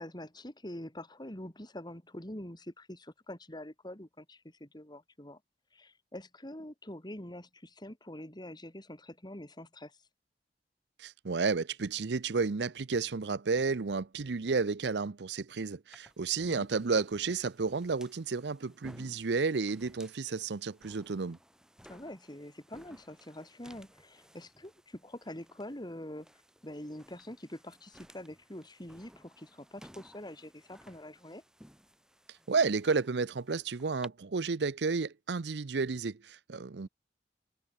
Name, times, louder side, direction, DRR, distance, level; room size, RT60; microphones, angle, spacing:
voice 1, 0.0-5.4 5.7-10.0 16.5-16.7 21.8-26.3 26.6-31.4, left 1 dB, 25° left, 3.8 m, -45 dB
voice 2, 11.0-21.4 32.5-36.9, right 4 dB, 70° right, 0.6 m, -32 dB
sound 1, 15.9-34.1, equal, 5° right, 6.9 m, -58 dB
head